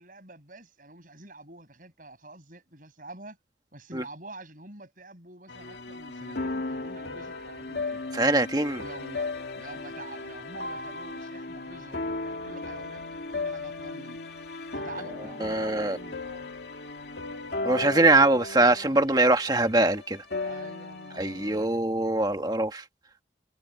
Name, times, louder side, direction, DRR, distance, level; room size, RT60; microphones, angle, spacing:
voice 1, 0.0-3.4 3.7-8.0 8.8-9.3 9.5-13.0 13.3-14.2 14.7-16.5 20.4-21.8, right 2 dB, 45° right, 7.9 m, -47 dB
sound 1, 5.5-21.6, left 3 dB, 70° left, 2.2 m, -36 dB
voice 2, 8.1-8.8 15.4-16.0 17.6-20.2 21.2-22.8, right 2 dB, 20° right, 1.7 m, -23 dB
head